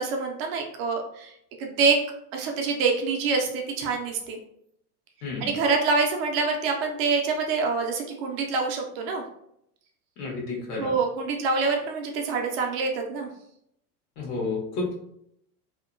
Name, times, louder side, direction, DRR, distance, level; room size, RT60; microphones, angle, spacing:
voice 1, 0.0-1.3 1.6-2.0 2.3-4.4 5.4-9.2 10.8-13.3, right 4 dB, 40° right, 2 dB, 0.4 m, -26 dB
voice 2, 10.2-10.9 14.2-14.9, left 3 dB, 80° left, -3 dB, 1.2 m, -31 dB
2.8 x 2.1 x 2.5 m, 0.75 s
supercardioid pair, 125°, 46 cm